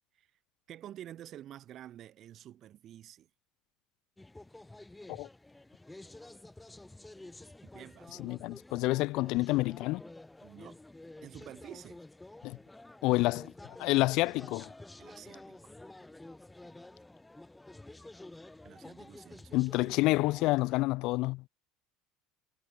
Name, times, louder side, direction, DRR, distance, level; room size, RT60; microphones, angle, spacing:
voice 1, 0.7-3.3 7.6-8.3 10.4-10.8 11.2-12.0 15.0-15.7 18.6-19.9, right 11 dB, 50° right, 6.3 m, -49 dB
sound 1, 4.2-20.8, left 2 dB, 10° left, 3.9 m, -50 dB
voice 2, 8.2-10.0 12.4-12.6 13.0-13.5 13.8-14.7 19.5-21.4, left 21 dB, 60° left, 0.9 m, -28 dB
hypercardioid pair, 70°, 0 cm